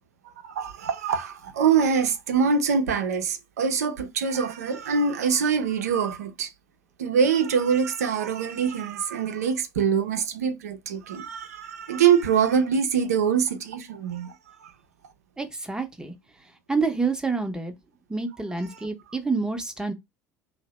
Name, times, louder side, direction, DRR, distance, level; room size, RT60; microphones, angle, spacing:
voice 1, 0.2-6.5 7.0-14.7, right 6 dB, 75° right, 0.5 m, -24 dB
voice 2, 15.4-16.1 16.7-17.7 18.1-19.9, right 4 dB, 10° right, 0.7 m, -28 dB
2.7 x 2.1 x 3.0 m
figure-of-eight pair, 65°, 9 cm